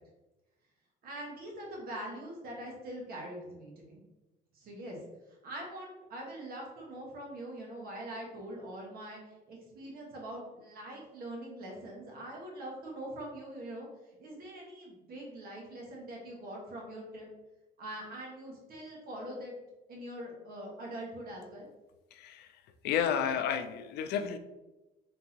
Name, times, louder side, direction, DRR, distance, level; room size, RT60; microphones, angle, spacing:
voice 1, 1.0-4.0 4.5-5.0 5.4-13.9 14.2-17.3 17.8-19.6 19.9-21.7, right 1 dB, 60° right, -1 dB, 1.4 m, -43 dB
voice 2, 22.1-22.5 22.8-24.4, left 8 dB, 75° left, 8 dB, 0.4 m, -31 dB
3.8 x 3.5 x 2.9 m, 1.1 s
cardioid pair, 110°, 17 cm